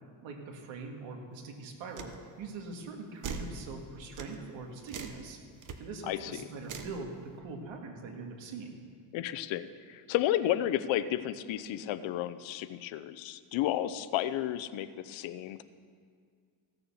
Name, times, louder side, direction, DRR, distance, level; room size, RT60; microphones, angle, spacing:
voice 1, 0.2-5.4 5.8-8.8, right 3 dB, 70° right, 2 dB, 2.0 m, -42 dB
sound 1, 2.0-2.1 3.2-3.5 4.2-4.3 4.9-5.2 5.6-5.8 6.7-7.0, right 6 dB, 40° right, 1.0 m, -39 dB
voice 2, 6.1-6.5 9.1-15.6, left 12 dB, 70° left, 14 dB, 0.7 m, -32 dB
15.5 x 6.9 x 7.0 m, 2.1 s
cardioid pair, 135°, 48 cm